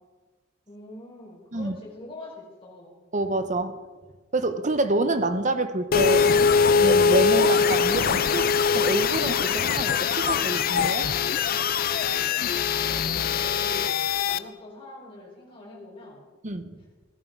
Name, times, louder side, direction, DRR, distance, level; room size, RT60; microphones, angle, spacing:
voice 1, 0.7-3.0 12.7-13.9 14.2-16.2, left 1 dB, 30° left, -4 dB, 4.6 m, -43 dB
voice 2, 3.1-3.8 4.3-6.3 6.7-11.1 16.4-16.8, right 2 dB, 40° right, 10 dB, 1.0 m, -27 dB
sound 1, 5.9-14.4, left 6 dB, 50° left, 0.5 m, -22 dB
16.5 x 14.5 x 4.7 m, 1.3 s
head